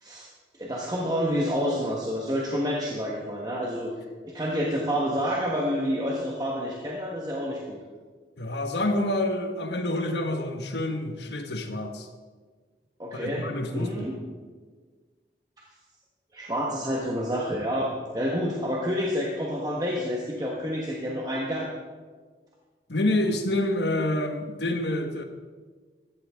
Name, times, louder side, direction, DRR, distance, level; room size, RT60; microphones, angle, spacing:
voice 1, 0.6-3.9 4.2-7.8 13.0-14.2 16.3-21.7, equal, 20° right, -2 dB, 1.3 m, -28 dB
voice 2, 8.4-12.1 13.1-14.1 22.9-25.2, left 1 dB, 75° left, 6 dB, 1.4 m, -27 dB
15.0 x 12.5 x 3.6 m, 1.5 s
head